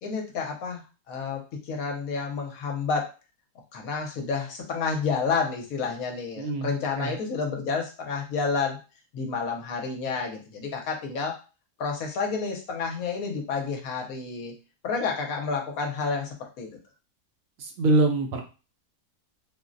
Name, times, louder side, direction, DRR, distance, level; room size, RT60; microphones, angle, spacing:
voice 1, 0.0-3.1 3.7-8.8 9.1-11.4 11.8-14.6 14.8-16.8, left 5 dB, 70° left, 2 dB, 1.0 m, -30 dB
voice 2, 6.4-7.2 17.6-18.4, right 2 dB, 70° right, 3 dB, 0.9 m, -25 dB
3.7 x 2.0 x 2.5 m, 0.32 s
omnidirectional pair, 1.6 m